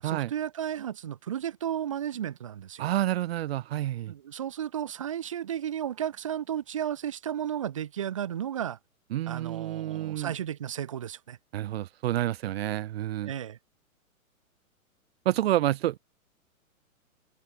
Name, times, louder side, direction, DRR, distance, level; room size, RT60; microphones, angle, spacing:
voice 1, 0.0-2.8 4.1-8.8 9.3-11.4 13.2-13.6, right 10 dB, 25° right, 0.4 m, -33 dB
voice 2, 2.8-4.1 9.1-10.3 11.5-13.3 15.2-16.0, right 13 dB, 45° right, 1.4 m, -29 dB
figure-of-eight pair, 120°, 43 cm